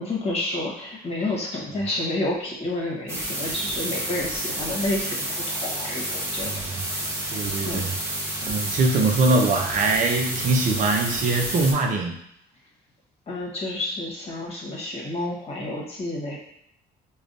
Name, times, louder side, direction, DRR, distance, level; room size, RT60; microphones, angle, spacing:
voice 1, 0.0-5.2 5.5-6.5 7.7-7.9 13.3-16.4, left 2 dB, 35° left, -3 dB, 1.2 m, -29 dB
sound 1, 3.1-11.7, right 1 dB, 15° right, 0.9 m, -30 dB
voice 2, 6.4-6.8 7.3-7.9 8.4-12.1, right 3 dB, 50° right, 3 dB, 0.7 m, -22 dB
4.9 x 2.3 x 2.6 m, 0.72 s
cardioid pair, 110°, 17 cm